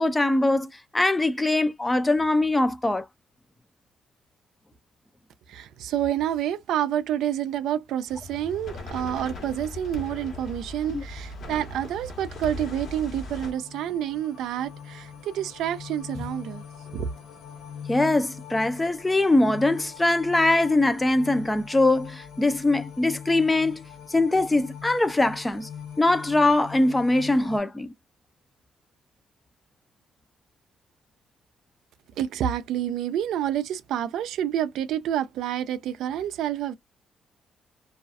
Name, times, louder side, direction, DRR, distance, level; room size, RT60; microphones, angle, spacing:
voice 1, 0.0-3.0 10.9-11.0 17.9-23.8 24.1-25.7 26.0-27.9, left 2 dB, 15° left, 0.4 m, -22 dB
voice 2, 5.5-16.6 16.9-17.1 32.2-36.8, right 10 dB, 80° right, 0.3 m, -28 dB
sound 1, 8.1-13.5, left 2 dB, 60° left, 1.1 m, -38 dB
sound 2, 11.4-27.6, left 7 dB, 85° left, 0.9 m, -42 dB
2.4 x 2.3 x 2.5 m
cardioid pair, 90°, 0 cm